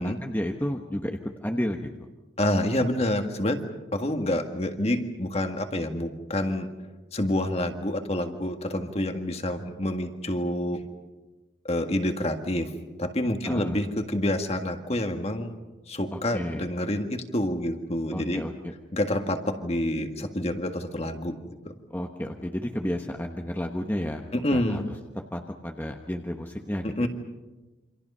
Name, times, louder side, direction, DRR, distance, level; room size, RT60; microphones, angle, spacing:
voice 1, 0.0-1.9 13.4-13.8 16.1-16.7 18.1-18.5 21.9-24.2 24.5-24.8 25.3-27.1, equal, 10° left, 3 dB, 1.1 m, -31 dB
voice 2, 2.4-3.6 3.9-6.7 7.1-10.8 11.6-12.7 13.0-15.5 15.9-18.4 18.9-21.4 24.3-24.9 26.8-27.1, left 1 dB, 35° left, 6 dB, 1.8 m, -27 dB
28.5 x 26.0 x 5.6 m, 1.1 s
head